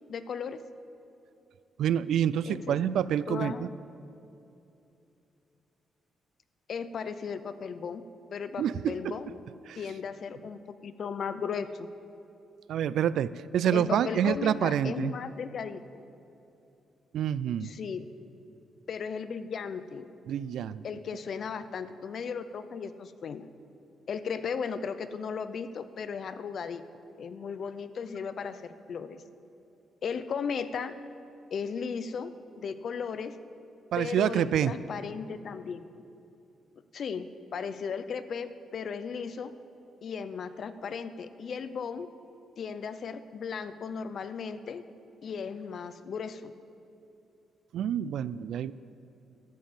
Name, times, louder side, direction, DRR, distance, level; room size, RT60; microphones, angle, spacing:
voice 1, 0.1-0.6 2.5-2.8 3.3-3.7 6.7-9.4 9.7-11.9 13.7-16.0 17.6-18.1 18.9-20.1 20.8-23.5 24.1-26.8 27.2-29.2 30.0-30.9 31.5-32.3 32.6-33.4 34.0-35.9 36.9-39.5 40.0-42.1 42.6-44.8 45.2-46.5, left 6 dB, 50° left, 12 dB, 0.5 m, -36 dB
voice 2, 1.8-3.7 8.6-9.2 9.7-9.8 12.7-15.1 17.1-17.7 20.3-20.8 33.9-34.7 47.7-48.7, right 9 dB, 75° right, 17 dB, 0.3 m, -27 dB
12.5 x 7.3 x 7.8 m, 2.8 s
cardioid pair, 155°, 0 cm